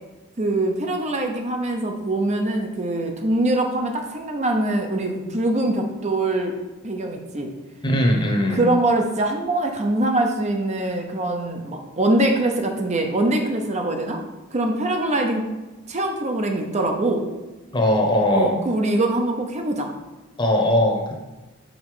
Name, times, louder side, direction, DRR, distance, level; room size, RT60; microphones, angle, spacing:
voice 1, 0.4-6.6 6.8-7.5 8.5-14.2 14.5-15.5 15.9-17.2 18.3-19.9, right 1 dB, 35° right, 3 dB, 0.6 m, -23 dB
voice 2, 7.8-8.7 17.7-18.6 20.4-21.2, left 1 dB, 20° left, 0 dB, 0.9 m, -20 dB
5.1 x 4.1 x 4.9 m, 1.1 s
head